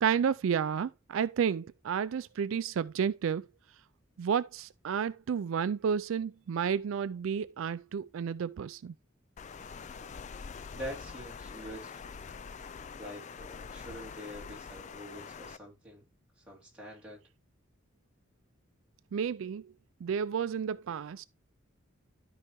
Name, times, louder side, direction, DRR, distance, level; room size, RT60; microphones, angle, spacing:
voice 1, 0.0-3.5 4.2-8.9 19.1-19.7 20.0-21.3, right 7 dB, 70° right, 0.3 m, -31 dB
Water, 9.4-15.6, left 5 dB, 35° left, 0.3 m, -45 dB
voice 2, 10.7-12.3 13.0-16.0 16.5-17.2, equal, 5° right, 2.8 m, -45 dB
12.5 x 4.8 x 3.0 m
head